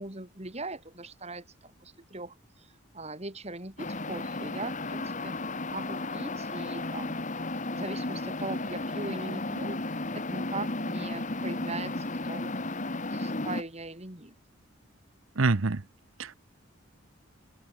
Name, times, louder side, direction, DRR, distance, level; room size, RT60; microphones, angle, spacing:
voice 1, 0.0-5.4 5.7-7.3 7.7-12.7 13.1-14.4, right 2 dB, 30° right, 4.2 m, -40 dB
sound 1, 3.8-13.6, left 2 dB, 40° left, 2.0 m, -34 dB
voice 2, 15.4-15.8 16.2-16.3, right 3 dB, 80° right, 0.9 m, -25 dB
open air
head